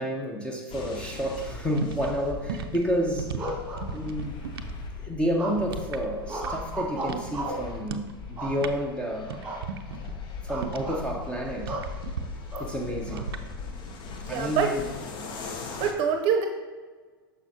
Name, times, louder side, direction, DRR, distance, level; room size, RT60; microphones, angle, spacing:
voice 1, 0.0-3.4 3.9-4.4 5.0-9.4 10.4-11.8 12.6-13.3 14.3-14.9, equal, 10° left, 0 dB, 0.8 m, -30 dB
sound 1, 0.7-15.9, left 4 dB, 40° left, 0.9 m, -40 dB
sound 2, 1.1-4.8 5.1-6.7 7.0-7.4 7.8-8.1 8.4-11.0 11.6-12.2 13.1-13.4, right 7 dB, 70° right, 0.5 m, -37 dB
sound 3, 3.4-4.4 5.4-5.8 6.3-7.7 8.4-9.0 9.4-9.7 10.0-10.1 10.5-11.1 11.7-11.9 12.5-13.2, right 1 dB, 10° right, 1.6 m, -35 dB
voice 2, 14.2-14.7 15.3-16.5, right 7 dB, 45° right, 5 dB, 0.8 m, -26 dB
6.4 x 6.1 x 2.8 m, 1.4 s
hypercardioid pair, 100°, 13 cm